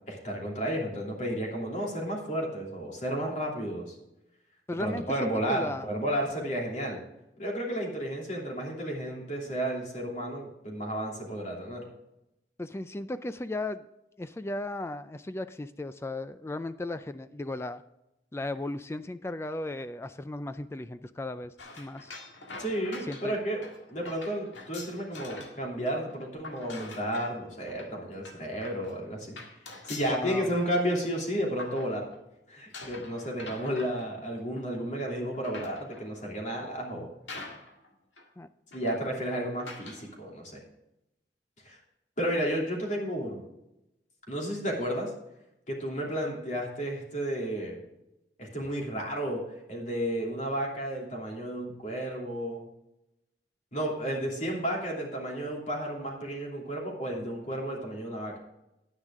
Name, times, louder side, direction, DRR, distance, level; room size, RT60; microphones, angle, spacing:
voice 1, 0.1-3.9 4.8-7.0 7.4-11.9 22.6-23.6 23.9-29.4 29.8-32.1 32.5-37.1 38.7-40.6 41.6-41.8 42.2-43.4 44.3-45.1 45.7-47.8 48.4-49.4 49.7-52.6 53.7-58.4, right 1 dB, 45° left, -2 dB, 2.9 m, -32 dB
voice 2, 4.7-5.0 5.5-5.9 12.6-13.8 14.2-17.8 18.3-22.1 23.1-23.4 30.1-30.5 38.4-38.5, left 2 dB, 15° left, 12 dB, 0.3 m, -36 dB
sound 1, 21.6-25.6 25.9-32.3 32.7-34.8 35.2-36.2 36.8-36.9 37.3-37.9 38.2-38.3 38.7-39.1 39.6-40.1, left 2 dB, 90° left, 2.0 m, -45 dB
9.9 x 9.9 x 3.7 m, 0.89 s
head